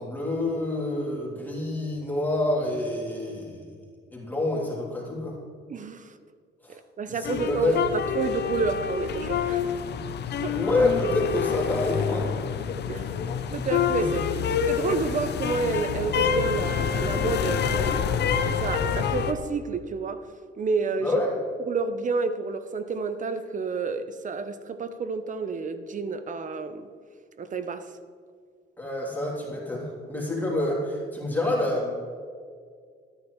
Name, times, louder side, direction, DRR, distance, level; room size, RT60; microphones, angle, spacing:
voice 1, 0.0-3.7 4.1-5.3 6.6-6.8 7.1-7.8 10.5-12.3 14.0-14.2 21.0-21.3 28.8-32.0, left 2 dB, 10° left, 3.0 m, -27 dB
voice 2, 5.7-6.1 6.7-9.7 10.4-10.6 12.9-13.1 13.5-14.2 14.7-20.3 20.6-21.2 21.6-26.9 27.4-27.9, right 4 dB, 40° right, 0.7 m, -30 dB
sound 1, 7.2-19.3, left 7 dB, 60° left, 0.6 m, -27 dB
13.0 x 9.8 x 3.2 m
cardioid pair, 90°, 20 cm